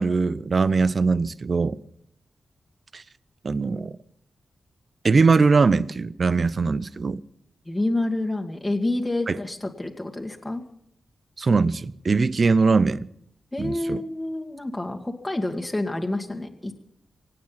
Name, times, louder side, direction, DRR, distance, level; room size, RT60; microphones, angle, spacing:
voice 1, 0.0-1.8 2.9-3.0 3.4-3.9 5.0-7.2 9.3-9.4 11.4-13.1 13.6-14.0, right 4 dB, 50° right, 0.7 m, -21 dB
voice 2, 7.7-10.6 13.5-16.8, left 2 dB, 15° left, 1.9 m, -28 dB
25.0 x 8.7 x 5.9 m
cardioid pair, 75°, 0 cm